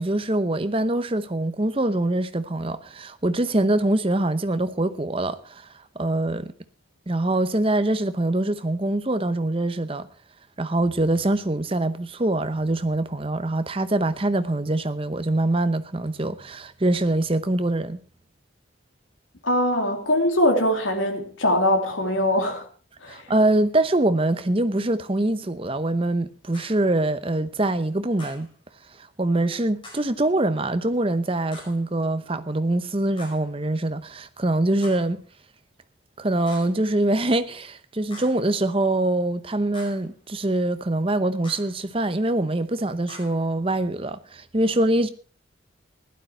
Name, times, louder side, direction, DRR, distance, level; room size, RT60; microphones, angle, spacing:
voice 1, 0.0-6.5 7.1-10.1 10.6-18.0 23.1-28.5 29.0-35.2 36.2-45.1, right 2 dB, 30° right, 0.8 m, -24 dB
voice 2, 19.4-22.7 23.0-23.3, left 1 dB, 85° left, 2.6 m, -22 dB
sound 1, 26.5-26.9 28.2-28.5 29.8-30.2 31.5-31.9 33.2-33.5 34.8-35.1 36.5-36.8 38.1-38.5 39.7-40.1 41.4-41.8 43.1-43.5, left 2 dB, 25° left, 5.2 m, -45 dB
15.5 x 12.0 x 4.5 m
head